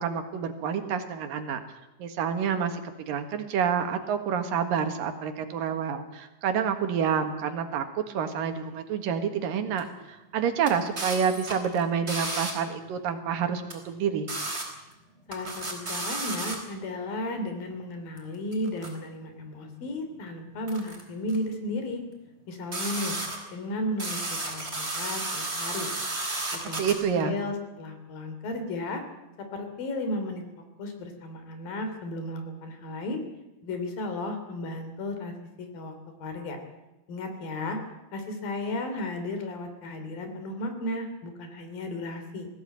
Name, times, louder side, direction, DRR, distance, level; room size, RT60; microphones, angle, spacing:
voice 1, 0.0-1.6 2.0-14.3 26.6-27.4, right 7 dB, 75° right, 7 dB, 3.4 m, -28 dB
sound 1, 9.8-9.9 10.7-12.5 13.7-13.8 14.3-14.6 14.9-15.0 15.3-16.6 18.2-18.3 18.5-18.9 20.7-21.0 21.3-21.4 22.7-23.5 24.0-26.9, right 2 dB, 15° right, 4.5 m, -32 dB
voice 2, 15.3-22.0 22.5-23.1 23.5-24.2 24.5-25.9 26.7-26.8 27.1-29.0 29.5-30.4 30.8-33.2 33.6-35.9 36.2-36.6 37.1-37.8 38.1-42.5, left 1 dB, 80° left, 6 dB, 4.8 m, -34 dB
20.0 x 15.5 x 9.0 m, 1.0 s
omnidirectional pair, 4.0 m